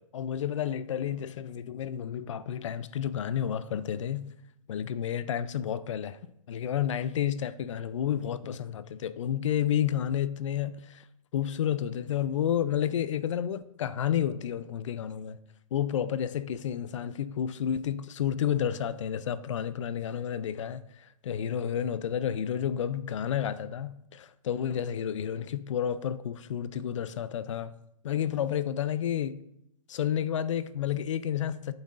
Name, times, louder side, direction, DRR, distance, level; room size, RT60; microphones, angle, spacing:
voice 1, 0.0-4.3 4.7-6.2 6.5-11.0 11.3-15.4 15.7-27.7 28.0-29.3 29.9-31.7, left 9 dB, 55° left, 0.4 m, -31 dB
9.2 x 7.9 x 2.5 m
hypercardioid pair, 150°, 19 cm